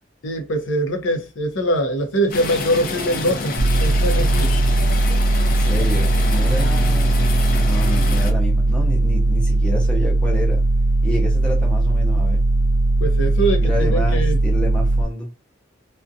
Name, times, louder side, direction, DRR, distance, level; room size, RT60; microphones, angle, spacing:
voice 1, 0.2-4.5 13.0-14.4, right 1 dB, 80° left, 0.7 m, -23 dB
sound 1, 2.3-8.3, left 3 dB, 45° left, 0.5 m, -28 dB
sound 2, 3.6-15.0, right 2 dB, 75° right, 0.4 m, -18 dB
voice 2, 5.4-7.1 7.5-10.6 11.0-12.4 13.6-15.3, equal, 5° left, 0.6 m, -29 dB
2.4 x 2.2 x 2.6 m
head